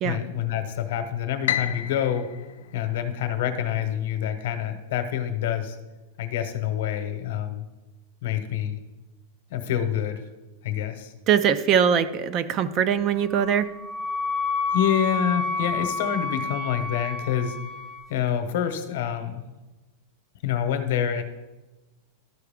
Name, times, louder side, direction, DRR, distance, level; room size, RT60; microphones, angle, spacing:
voice 1, 0.0-2.3 2.7-5.8 6.2-7.6 8.2-8.8 9.5-10.2 10.6-11.1 14.7-17.6 18.1-19.4 20.4-21.2, left 9 dB, 60° left, 8 dB, 0.9 m, -27 dB
Piano, 1.5-3.7, left 11 dB, 85° left, 0.5 m, -31 dB
voice 2, 11.3-13.7, right 8 dB, 25° right, 13 dB, 0.3 m, -22 dB
Wind instrument woodwind instrument, 13.3-18.1, left 3 dB, 5° right, 0.7 m, -29 dB
12.5 x 4.7 x 3.5 m, 1.1 s
supercardioid pair, 170°, 0 cm